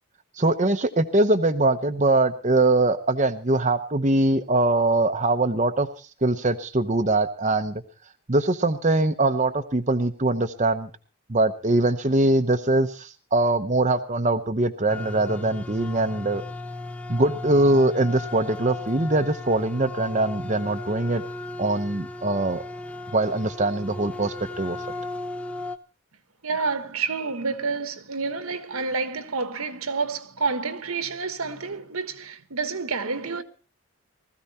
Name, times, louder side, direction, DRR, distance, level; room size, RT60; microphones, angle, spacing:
voice 1, 0.3-7.8 8.3-10.9 11.3-16.4 17.1-21.2 21.6-22.6 23.1-24.8, right 2 dB, 30° right, 0.8 m, -22 dB
sound 1, 14.9-25.8, left 2 dB, 5° left, 0.8 m, -36 dB
voice 2, 26.4-33.4, right 4 dB, 75° right, 1.4 m, -29 dB
19.5 x 14.5 x 4.3 m
head